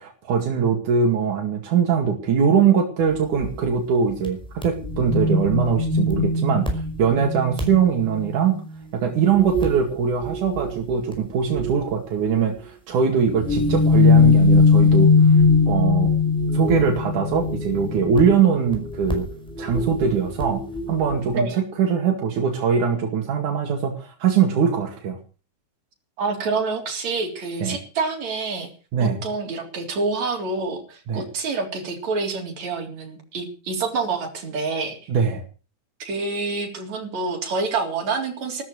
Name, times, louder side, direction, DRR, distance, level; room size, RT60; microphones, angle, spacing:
voice 1, 0.0-8.6 8.9-15.4 15.7-16.1 16.5-19.3 19.6-25.2 27.6-27.8 28.9-29.2 31.1-31.3 35.1-35.4, right 6 dB, 85° right, 2 dB, 3.7 m, -22 dB
sound 1, 3.4-3.5 4.2-4.3 4.6-8.8 9.2-9.8 10.1-11.8 13.2-21.2, left 4 dB, ahead, 5.0 m, -20 dB
voice 2, 26.2-28.7 29.0-35.0 36.0-38.6, right 4 dB, 65° right, 2 dB, 4.8 m, -27 dB
14.5 x 13.5 x 6.5 m, 0.37 s
omnidirectional pair, 3.4 m